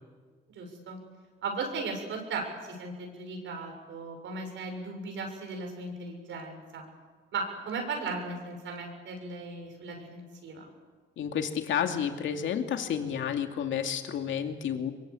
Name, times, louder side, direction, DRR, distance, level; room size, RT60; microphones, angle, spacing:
voice 1, 0.5-1.0 1.4-6.8 7.3-10.7, right 3 dB, 75° right, 3 dB, 6.9 m, -37 dB
voice 2, 11.2-14.9, left 8 dB, 75° left, 5 dB, 2.6 m, -30 dB
24.0 x 23.0 x 8.5 m, 1.4 s
cardioid pair, 90°, 20 cm